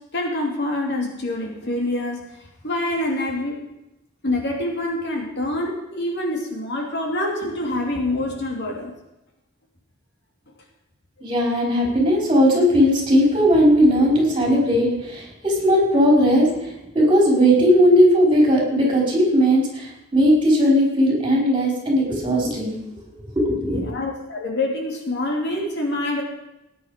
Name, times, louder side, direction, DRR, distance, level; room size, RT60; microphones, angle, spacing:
voice 1, 0.1-2.2 2.6-3.6 4.2-8.9 23.6-26.2, left 1 dB, 55° left, 1 dB, 2.9 m, -26 dB
voice 2, 11.2-23.9, equal, 25° right, -2 dB, 5.4 m, -18 dB
18.5 x 10.0 x 5.2 m, 0.92 s
head